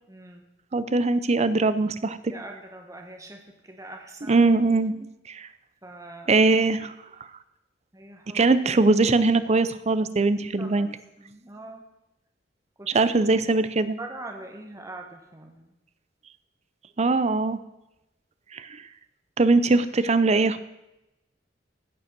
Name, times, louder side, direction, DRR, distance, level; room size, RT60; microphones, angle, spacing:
voice 1, 0.1-0.5 2.3-4.4 5.8-6.4 7.9-8.4 10.6-10.9 11.2-11.8 12.8-12.9 14.0-15.7, right 2 dB, 20° right, 2 dB, 1.1 m, -42 dB
voice 2, 0.7-2.2 4.3-4.9 5.3-5.5 6.3-6.9 8.3-10.9 12.9-14.0 17.0-17.6 18.5-18.7 19.4-20.6, right 3 dB, 35° right, 14 dB, 0.6 m, -21 dB
15.5 x 5.6 x 6.0 m, 0.93 s
head